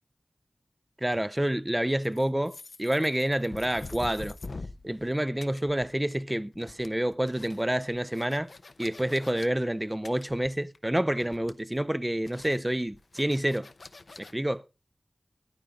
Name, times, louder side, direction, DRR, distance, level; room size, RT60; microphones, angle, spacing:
voice 1, 1.0-4.4 4.8-8.5 8.8-13.7 14.2-14.6, right 1 dB, 15° right, 0.6 m, -28 dB
sound 1, 1.1-1.6 3.6-4.3 6.6-7.2 9.0-9.5 11.2-11.7, right 2 dB, 65° right, 5.9 m, -56 dB
sound 2, 2.0-5.1 5.4-6.3 6.5-9.5 10.0-10.9 11.2-11.8 12.2-14.3, left 3 dB, 70° left, 0.8 m, -45 dB
14.5 x 10.5 x 3.8 m
wide cardioid pair, 65°, 0 cm